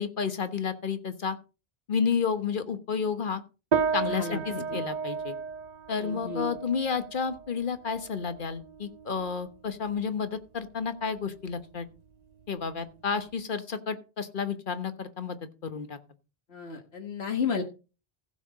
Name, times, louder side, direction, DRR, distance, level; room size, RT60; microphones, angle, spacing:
voice 1, 0.0-1.4 1.9-3.4 3.9-5.3 5.9-11.9 12.5-16.0, left 6 dB, 55° left, 10 dB, 1.3 m, -31 dB
sound 1, 3.7-13.4, right 6 dB, 45° right, 0.7 m, -35 dB
voice 2, 4.1-4.8 5.9-6.6 16.5-17.6, left 5 dB, 80° left, 3 dB, 1.7 m, -33 dB
15.5 x 7.5 x 4.1 m, 0.32 s
omnidirectional pair, 1.0 m